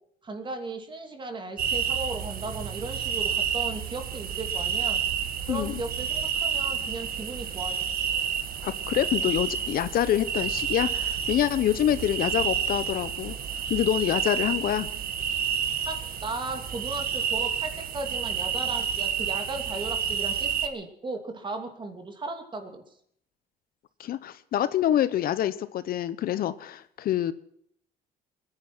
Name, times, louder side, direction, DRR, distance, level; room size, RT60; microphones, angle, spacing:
voice 1, 0.2-5.0 5.5-7.9 15.8-22.8, right 2 dB, 30° right, 6 dB, 2.8 m, -36 dB
sound 1, 1.6-20.7, right 8 dB, 60° right, 1.6 m, -30 dB
voice 2, 5.5-5.8 8.6-13.3 13.7-14.9 24.0-27.3, left 11 dB, 60° left, 14 dB, 1.0 m, -26 dB
22.0 x 10.5 x 6.2 m, 0.67 s
cardioid pair, 110°, 17 cm